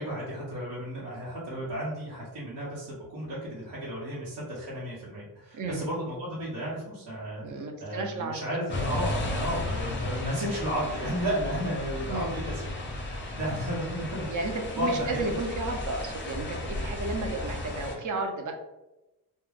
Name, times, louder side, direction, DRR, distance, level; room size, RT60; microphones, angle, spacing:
voice 1, 0.0-12.6 12.9-15.3, equal, 90° right, -7 dB, 0.9 m, -33 dB
voice 2, 7.4-8.4 12.0-12.3 14.3-18.5, right 3 dB, 50° right, 4 dB, 0.5 m, -33 dB
sound 1, 8.7-17.9, left 2 dB, 30° left, 0.5 m, -34 dB
2.3 x 2.2 x 3.2 m, 1.0 s
wide cardioid pair, 145°, 41 cm